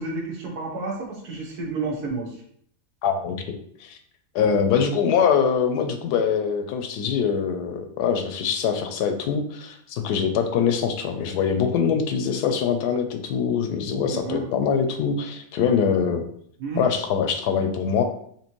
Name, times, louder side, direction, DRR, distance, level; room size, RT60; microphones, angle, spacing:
voice 1, 0.0-2.4 14.1-14.4 16.6-16.8, right 3 dB, 75° right, -1 dB, 1.6 m, -30 dB
voice 2, 3.0-4.0 4.3-16.2 16.8-18.0, left 7 dB, 80° left, 6 dB, 1.1 m, -23 dB
4.3 x 3.1 x 3.0 m, 0.65 s
omnidirectional pair, 1.7 m